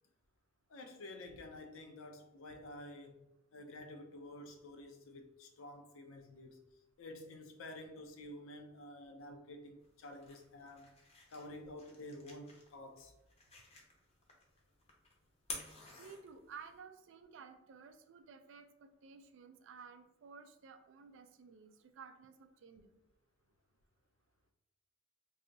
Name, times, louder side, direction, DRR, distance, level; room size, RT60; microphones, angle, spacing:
voice 1, 0.7-6.6 7.0-11.0 11.3-13.1, left 1 dB, 75° left, 0.5 m, -50 dB
sound 1, 9.8-16.8, left 3 dB, 30° left, 0.6 m, -52 dB
voice 2, 16.0-23.0, right 5 dB, 60° right, 0.3 m, -55 dB
2.7 x 2.4 x 3.8 m
head